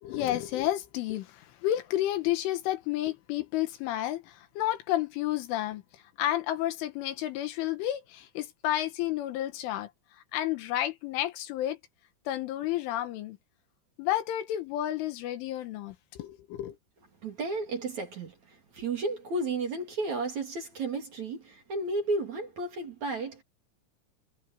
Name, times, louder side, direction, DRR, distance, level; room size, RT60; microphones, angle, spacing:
voice 1, 0.0-11.8 12.3-13.4 14.0-16.8, left 13 dB, 75° left, 3.7 m, -31 dB
voice 2, 17.2-23.4, right 2 dB, 40° right, 3.7 m, -33 dB
omnidirectional pair, 5.8 m